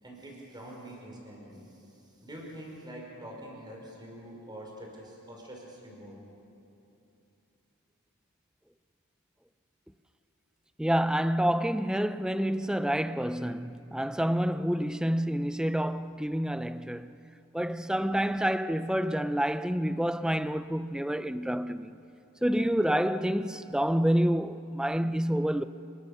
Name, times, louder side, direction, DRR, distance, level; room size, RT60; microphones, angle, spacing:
voice 1, 0.0-6.2, right 1 dB, 20° right, 5.5 m, -45 dB
voice 2, 10.8-17.2 17.5-22.0 22.4-25.6, equal, 5° right, 0.5 m, -28 dB
27.5 x 23.5 x 6.9 m
head